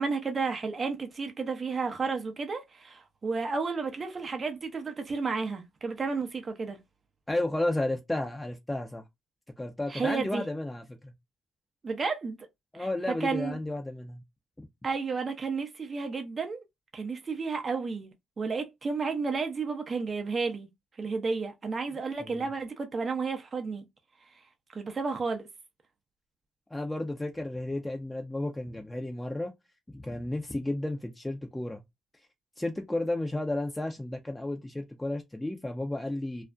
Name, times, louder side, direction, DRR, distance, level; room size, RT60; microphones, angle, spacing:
voice 1, 0.0-6.8 9.9-10.4 11.8-12.4 12.7-13.6 14.8-16.6 16.9-18.1 18.4-20.7 21.0-23.8 24.3-24.4 24.7-25.5, right 4 dB, 45° right, 0.7 m, -32 dB
voice 2, 7.3-9.1 9.6-11.1 12.7-14.2 14.6-14.7 22.2-22.5 26.7-29.5 29.9-31.8 32.6-36.4, left 1 dB, 15° left, 0.6 m, -32 dB
2.5 x 2.1 x 2.4 m
hypercardioid pair, 45°, 0 cm